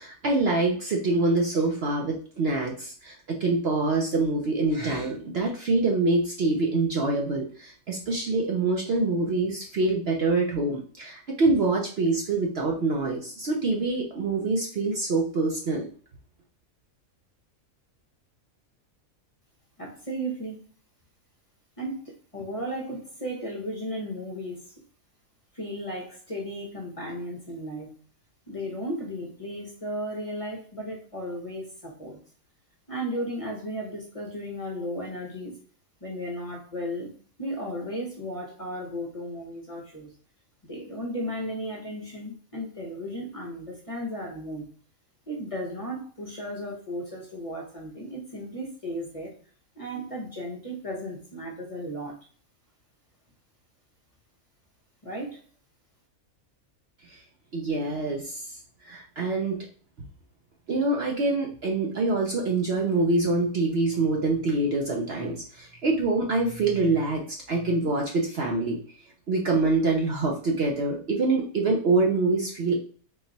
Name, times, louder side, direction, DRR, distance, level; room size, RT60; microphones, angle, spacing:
voice 1, 0.0-15.9 57.0-57.2 57.5-58.6 58.8-59.7 60.7-68.8 69.3-72.8, right 3 dB, 55° right, 0 dB, 0.8 m, -25 dB
voice 2, 19.8-20.6 21.8-24.6 25.5-27.9 28.5-32.2 32.9-35.5 36.0-37.1 37.4-40.1 40.6-44.7 45.3-49.3 49.8-52.2 55.0-55.4, equal, 30° left, -2 dB, 0.9 m, -35 dB
3.9 x 2.3 x 3.9 m, 0.42 s
omnidirectional pair, 1.5 m